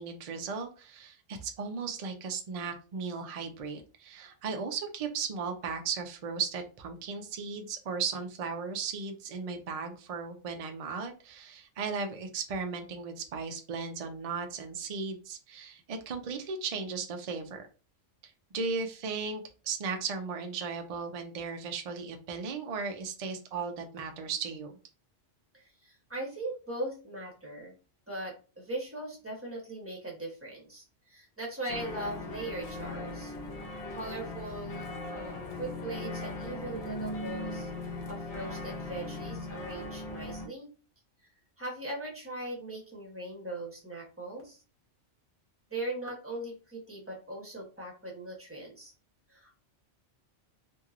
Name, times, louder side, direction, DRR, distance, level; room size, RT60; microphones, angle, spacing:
voice 1, 0.0-17.7 18.5-24.7, right 5 dB, 60° right, 5 dB, 0.4 m, -36 dB
voice 2, 25.5-27.7 28.1-33.3 33.9-37.7 38.1-40.7 41.6-44.6 45.7-48.9 49.3-49.5, right 2 dB, 10° right, -2 dB, 0.9 m, -40 dB
sound 1, 31.7-40.5, left 2 dB, 55° left, 0.4 m, -39 dB
2.9 x 2.6 x 2.4 m, 0.34 s
omnidirectional pair, 1.3 m